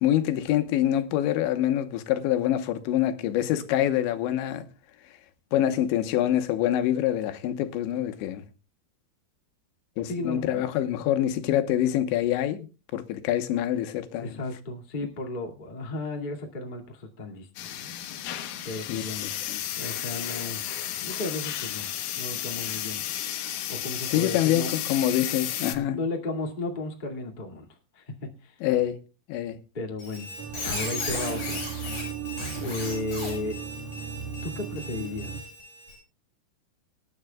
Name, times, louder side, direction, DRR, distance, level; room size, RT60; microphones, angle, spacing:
voice 1, 0.0-4.7 5.5-8.4 10.0-12.7 12.9-14.4 18.9-19.0 19.5-19.6 24.1-26.0 28.6-29.0 29.3-29.6, left 12 dB, 90° left, 3.4 m, -25 dB
voice 2, 10.0-10.7 14.2-17.9 18.6-19.3 19.8-20.6 21.0-21.9 22.1-23.0 23.7-24.7 25.9-27.6 27.9-28.6 29.7-30.3 30.6-31.6 32.6-33.6 34.4-35.4, left 2 dB, 35° left, 0.7 m, -34 dB
sound 1, 17.6-25.8, left 11 dB, 70° left, 2.1 m, -33 dB
Squeak, 30.0-36.0, left 3 dB, 50° left, 8.6 m, -36 dB
sound 2, 30.4-35.4, right 7 dB, 65° right, 1.5 m, -36 dB
25.0 x 10.0 x 2.3 m
omnidirectional pair, 5.1 m